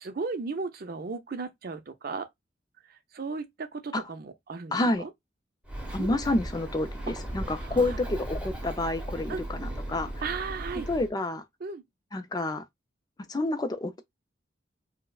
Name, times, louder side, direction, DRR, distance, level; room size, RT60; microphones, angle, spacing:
voice 1, 0.0-2.3 2.9-5.1 6.0-6.2 7.1-7.2 7.6-8.0 9.3-9.4 10.2-10.9 11.6-11.8, right 4 dB, 55° right, 0.6 m, -36 dB
voice 2, 4.7-5.0 5.9-10.1 10.9-11.4 12.1-12.6 13.3-14.0, left 2 dB, 20° left, 0.4 m, -29 dB
Bird, 5.6-11.1, right 1 dB, 5° right, 1.1 m, -37 dB
4.6 x 2.1 x 2.3 m
head